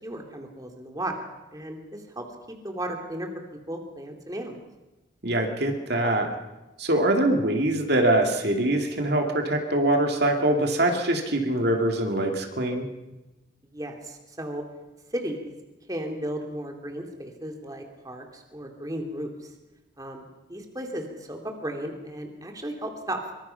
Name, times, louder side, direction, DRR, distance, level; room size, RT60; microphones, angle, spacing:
voice 1, 0.0-1.2 1.5-2.2 2.6-3.3 3.7-4.6 13.6-14.6 15.1-15.5 15.9-19.5 20.0-23.3, right 1 dB, 20° right, 2 dB, 2.7 m, -35 dB
voice 2, 5.2-6.3 6.8-12.9, right 1 dB, 55° right, 3 dB, 2.6 m, -23 dB
25.0 x 24.0 x 5.8 m, 1.1 s
head